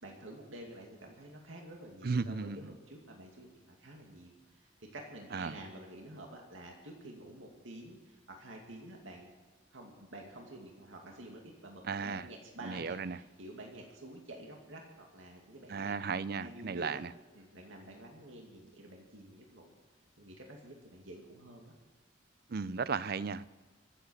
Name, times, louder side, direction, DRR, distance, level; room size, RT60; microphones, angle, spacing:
voice 1, 0.0-9.3 9.7-15.9 16.4-17.0 17.3-19.7 20.2-21.7, right 1 dB, 85° right, 1 dB, 2.4 m, -49 dB
voice 2, 2.0-2.7 5.3-5.6 11.8-12.3 12.6-13.2 15.7-17.1 22.5-23.4, right 5 dB, 50° right, 17 dB, 0.5 m, -35 dB
24.5 x 8.3 x 6.4 m, 1.4 s
head